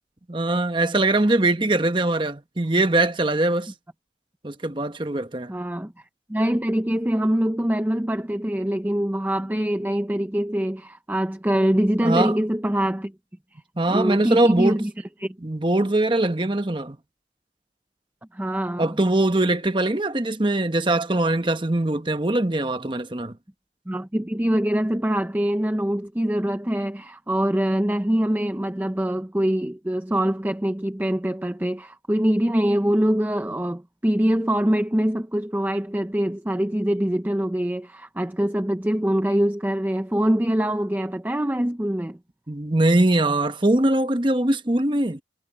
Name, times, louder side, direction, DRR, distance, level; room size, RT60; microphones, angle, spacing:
voice 1, 0.3-3.7 4.4-5.5 12.0-12.3 13.8-14.8 15.4-17.0 18.8-23.4 42.5-45.2, right 2 dB, 25° right, 1.0 m, -22 dB
voice 2, 5.5-13.1 13.5-13.6 13.9-14.9 15.2-15.4 18.3-19.0 23.9-42.2, equal, 10° right, 0.5 m, -24 dB
head